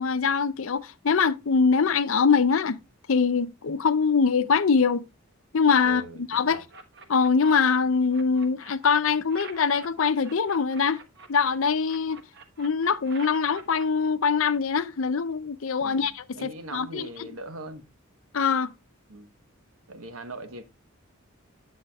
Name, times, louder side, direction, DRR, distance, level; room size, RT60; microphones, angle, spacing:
voice 1, 0.0-2.8 3.1-5.1 5.5-6.6 7.1-11.0 11.3-12.2 12.6-17.3 18.3-18.7, left 5 dB, 70° left, 0.6 m, -23 dB
voice 2, 5.8-6.6 15.8-17.9 19.1-19.3 19.9-20.6, right 2 dB, 80° right, 1.2 m, -41 dB
sound 1, 6.5-7.8 8.1-11.5 11.9-13.9, right 4 dB, 55° right, 1.2 m, -47 dB
10.0 x 7.9 x 2.3 m
head